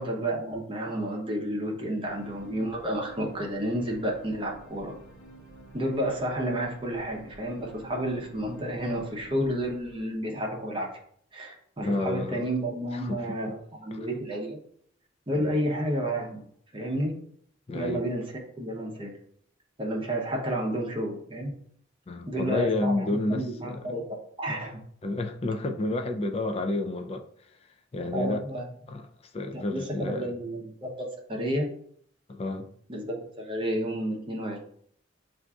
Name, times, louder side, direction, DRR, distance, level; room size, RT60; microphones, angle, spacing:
voice 1, 0.0-4.9 5.7-10.9 11.3-14.6 15.3-16.4 16.7-17.1 17.7-19.1 19.8-21.5 22.3-24.0 24.4-24.8 28.1-28.7 29.5-31.7 32.9-34.6, right 1 dB, 25° right, 0.7 m, -31 dB
sound 1, 2.1-10.5, right 2 dB, 80° left, 0.9 m, -50 dB
voice 2, 11.8-12.4 12.9-13.2 13.9-14.0 15.3-15.5 17.7-18.0 22.1-23.8 25.0-27.2 27.9-28.4 28.9-29.1 29.3-30.3 32.3-32.7, left 2 dB, 30° left, 0.3 m, -30 dB
6.9 x 2.5 x 2.3 m
head